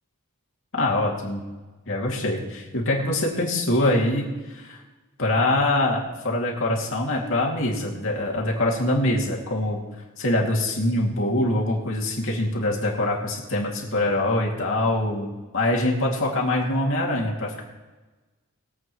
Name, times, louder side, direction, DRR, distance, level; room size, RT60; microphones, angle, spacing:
voice 1, 0.7-1.4 1.9-4.8 5.2-9.8 10.2-15.3 15.5-17.6, left 1 dB, 60° left, -2 dB, 2.4 m, -24 dB
22.0 x 8.4 x 3.1 m, 1.2 s
head